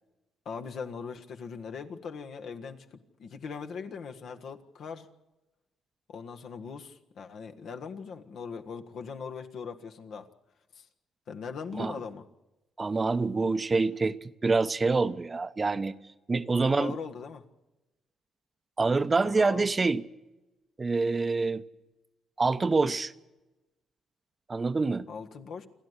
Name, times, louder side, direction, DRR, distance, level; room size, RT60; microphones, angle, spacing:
voice 1, 0.4-5.1 6.1-10.3 10.7-10.9 11.3-12.3 16.6-17.4 19.4-19.7 25.1-25.7, left 5 dB, 65° left, 1.6 m, -40 dB
voice 2, 12.8-15.9 16.3-17.0 18.8-20.0 20.8-21.6 22.4-23.1 24.5-25.1, right 3 dB, 30° right, 0.8 m, -26 dB
28.5 x 11.0 x 8.2 m
cardioid pair, 90°, 0 cm